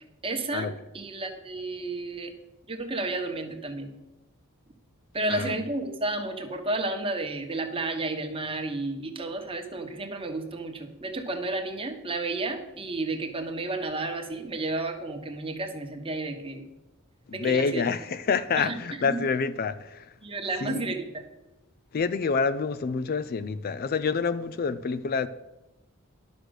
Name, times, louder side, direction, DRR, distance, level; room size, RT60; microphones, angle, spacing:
voice 1, 0.2-2.3 2.7-3.9 5.1-16.6 17.3-17.8 18.6-18.8 19.0-19.2 20.2-21.2, right 2 dB, 25° right, 1.3 m, -32 dB
voice 2, 17.4-20.1 20.6-20.9 21.9-25.3, left 5 dB, 45° left, 0.4 m, -27 dB
11.5 x 6.4 x 6.4 m
head